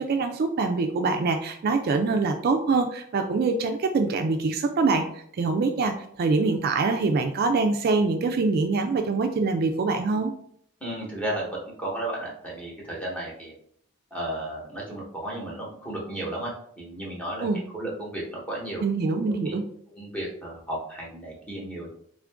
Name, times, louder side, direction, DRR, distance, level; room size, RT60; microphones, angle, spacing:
voice 1, 0.0-5.0 5.4-5.9 6.2-10.3 17.4-17.6 18.8-19.6, right 3 dB, 50° right, 6 dB, 0.3 m, -24 dB
voice 2, 10.8-13.5 14.1-17.5 17.7-18.8 19.2-19.6 19.9-21.9, right 1 dB, 5° left, -4 dB, 1.1 m, -34 dB
3.7 x 2.5 x 3.5 m, 0.65 s
head